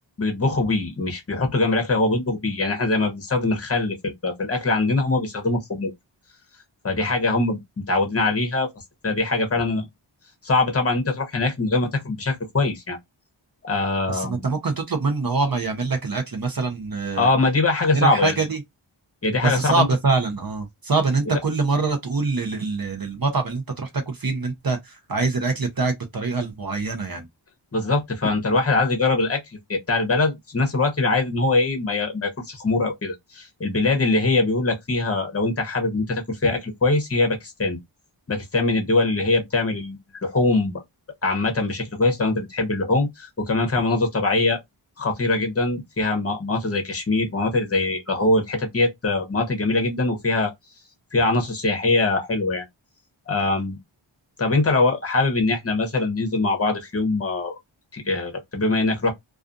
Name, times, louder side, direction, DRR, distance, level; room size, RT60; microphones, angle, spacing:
voice 1, 0.2-5.9 6.8-8.7 9.0-9.8 10.4-13.0 13.6-14.5 17.2-18.3 19.2-19.9 27.7-29.4 29.7-37.8 38.3-40.8 41.2-44.6 45.0-50.5 51.1-52.7 53.3-53.8 54.4-57.5 57.9-59.1, left 2 dB, 30° left, 0.9 m, -22 dB
voice 2, 14.1-17.3 17.9-18.6 19.4-27.3, right 4 dB, 45° right, 0.7 m, -24 dB
2.4 x 2.4 x 2.5 m
wide cardioid pair, 55°, 50 cm